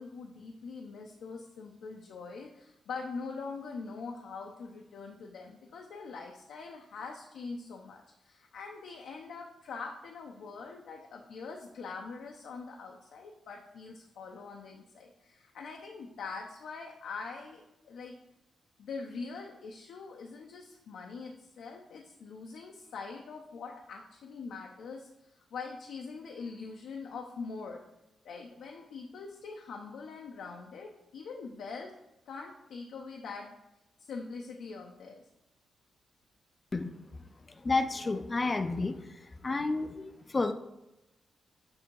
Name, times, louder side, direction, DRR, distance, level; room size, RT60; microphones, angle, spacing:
voice 1, 0.0-18.2 18.8-27.8 28.2-31.9 32.3-33.5 34.0-35.3, left 4 dB, 85° left, 1 dB, 0.6 m, -43 dB
voice 2, 37.6-39.0 39.4-40.5, left 3 dB, 30° left, 8 dB, 0.4 m, -30 dB
6.9 x 2.7 x 5.3 m, 0.95 s
cardioid pair, 80°, 0 cm